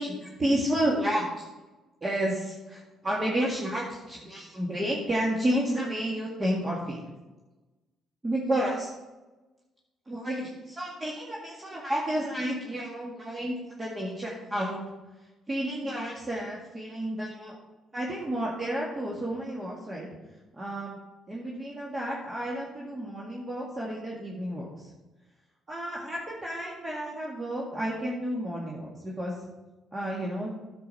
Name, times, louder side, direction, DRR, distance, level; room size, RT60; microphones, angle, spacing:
voice 1, 0.0-1.5 2.0-7.1 8.2-8.9 10.1-14.8 15.5-17.6 17.9-20.1 20.5-21.0 21.3-24.9 25.7-29.3 29.9-30.5, right 1 dB, 25° right, -4 dB, 2.0 m, -31 dB
10.0 x 7.1 x 4.3 m, 1.1 s
supercardioid pair, 65°, 0 cm